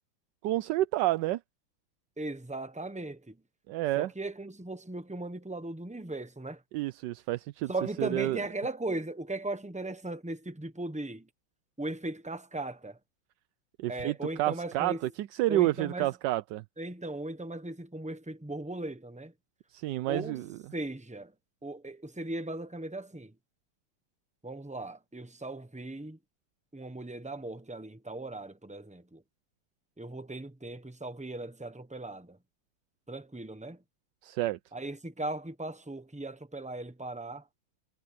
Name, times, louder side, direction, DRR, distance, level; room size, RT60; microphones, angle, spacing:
voice 1, 0.4-1.4 3.7-4.1 6.7-7.7 8.0-8.4 13.8-16.6 19.7-20.4 34.2-34.6, right 16 dB, 75° right, 1.1 m, -29 dB
voice 2, 2.2-3.4 4.0-6.6 7.7-11.3 11.8-13.0 13.9-15.1 15.5-16.1 16.8-19.3 20.1-21.3 21.6-23.3 24.4-26.2 26.7-29.2 30.0-32.4 33.1-33.8 34.7-37.4, right 2 dB, 10° right, 0.5 m, -38 dB
omnidirectional pair, 2.1 m